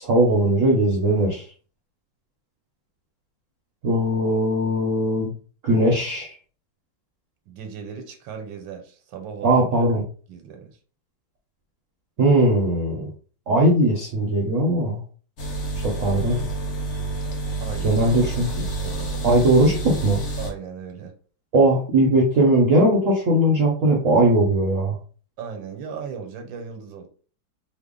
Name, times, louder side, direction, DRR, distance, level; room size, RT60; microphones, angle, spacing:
voice 1, 0.0-1.4 3.8-5.3 5.6-6.4 9.4-10.0 12.2-13.1 13.5-15.0 15.8-16.5 17.8-18.5 19.2-20.2 21.5-25.0, right 1 dB, 65° right, 0.8 m, -19 dB
voice 2, 7.5-9.6 10.3-10.7 17.6-18.1 18.8-19.2 20.4-21.1 25.4-27.1, right 6 dB, 85° right, 1.4 m, -36 dB
sound 1, 15.4-20.5, right 2 dB, 55° left, 0.9 m, -29 dB
3.3 x 2.0 x 3.6 m
omnidirectional pair, 2.1 m